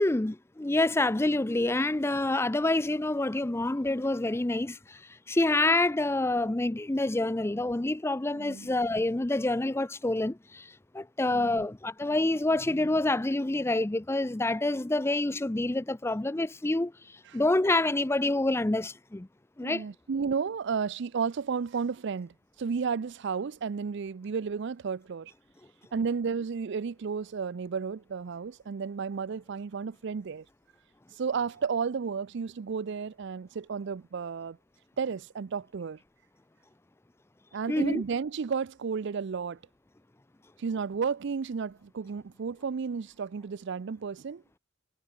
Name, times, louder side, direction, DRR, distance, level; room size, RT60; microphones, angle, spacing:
voice 1, 0.0-5.0 5.3-16.9 17.3-19.3 19.6-19.8 37.7-38.0, left 2 dB, 10° left, 0.5 m, -27 dB
voice 2, 8.3-8.7 11.3-11.7 17.3-17.4 19.6-25.3 25.9-30.4 31.2-34.6 35.0-36.0 37.5-39.6 40.6-44.4, right 5 dB, 55° right, 0.4 m, -32 dB
head